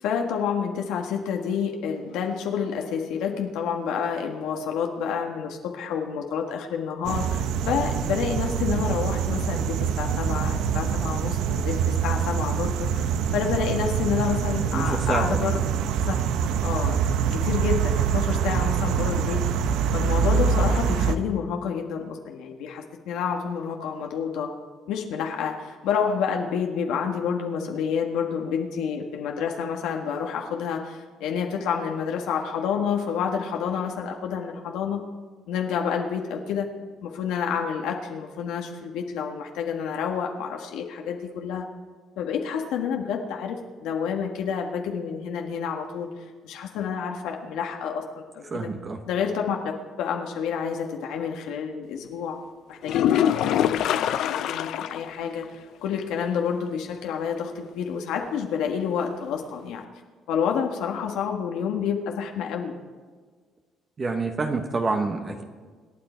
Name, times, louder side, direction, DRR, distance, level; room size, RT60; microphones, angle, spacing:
voice 1, 0.0-15.6 16.1-16.2 16.6-19.4 19.9-24.5 24.9-35.0 35.5-36.7 37.0-41.6 42.2-48.7 49.1-49.7 50.0-52.4 52.7-55.4 55.8-59.8 60.3-62.7, left 7 dB, 90° left, 2 dB, 1.6 m, -29 dB
sound 1, 7.0-21.2, right 7 dB, 85° right, 0.9 m, -25 dB
voice 2, 14.7-15.5 48.5-49.0 64.0-65.4, right 3 dB, 30° right, 5 dB, 1.2 m, -27 dB
sound 2, 52.8-55.1 55.4-55.5 56.0-56.1 59.8-59.9, left 10 dB, 70° left, 0.6 m, -24 dB
26.5 x 9.7 x 4.5 m, 1.5 s
cardioid pair, 140°, 0 cm